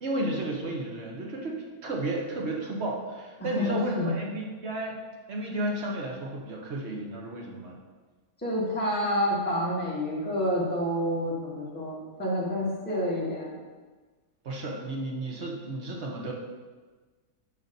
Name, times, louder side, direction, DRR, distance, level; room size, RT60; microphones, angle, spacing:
voice 1, 0.0-5.0 5.3-7.8 14.4-16.3, right 1 dB, 45° right, -1 dB, 1.2 m, -32 dB
voice 2, 3.6-4.1 8.4-13.6, equal, 5° left, -6 dB, 1.5 m, -28 dB
6.7 x 5.2 x 4.0 m, 1.3 s
omnidirectional pair, 1.7 m